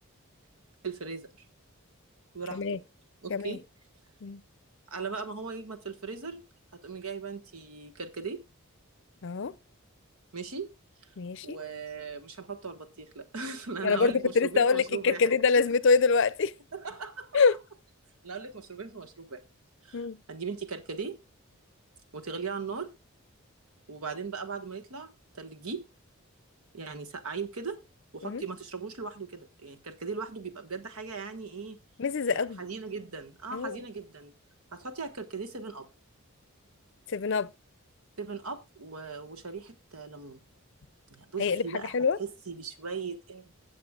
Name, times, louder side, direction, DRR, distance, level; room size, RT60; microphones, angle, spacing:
voice 1, 0.8-1.3 2.3-2.8 3.2-3.6 4.9-6.4 6.7-8.4 10.3-10.7 11.4-15.3 16.7-17.4 18.2-19.4 19.8-21.2 22.1-22.9 23.9-25.8 26.7-27.8 28.1-31.8 32.3-34.3 34.7-35.9 38.2-40.4 41.1-43.5, right 5 dB, 90° right, 1.4 m, -38 dB
voice 2, 9.2-9.5 11.2-11.6 13.8-16.5 17.3-17.6 19.9-20.2 28.2-28.4 32.0-32.6 33.5-33.8 37.1-37.5 41.4-42.2, left 4 dB, 55° left, 0.5 m, -25 dB
18.0 x 7.3 x 2.4 m
head